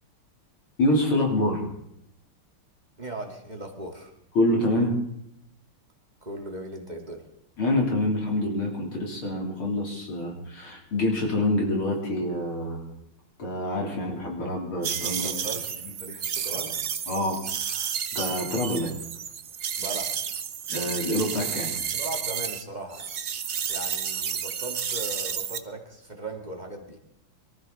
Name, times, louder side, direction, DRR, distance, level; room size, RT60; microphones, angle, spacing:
voice 1, 0.8-1.7 4.3-5.0 7.6-12.8 13.4-15.4 15.8-16.2 16.5-16.6 17.1-17.9 18.1-18.9 20.7-21.8, left 1 dB, 75° left, -1 dB, 4.4 m, -26 dB
voice 2, 3.0-4.1 6.2-7.2 15.2-16.8 19.8-20.1 21.7-23.1 23.7-27.0, right 1 dB, 20° right, 1 dB, 2.0 m, -38 dB
sound 1, 14.8-22.6 22.9-25.6, right 8 dB, 80° right, 0.6 m, -31 dB
23.5 x 14.0 x 4.1 m, 0.76 s
omnidirectional pair, 2.4 m